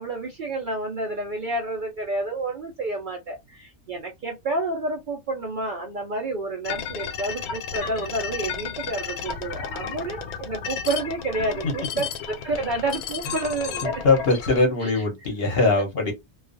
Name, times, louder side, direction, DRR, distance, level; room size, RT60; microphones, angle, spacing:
voice 1, 0.0-13.9 14.8-15.0, right 2 dB, 90° right, 0.4 m, -29 dB
sound 1, 6.6-14.6, left 6 dB, 90° left, 1.1 m, -33 dB
voice 2, 14.0-16.1, left 3 dB, 50° left, 0.8 m, -21 dB
2.4 x 2.3 x 2.4 m
omnidirectional pair, 1.5 m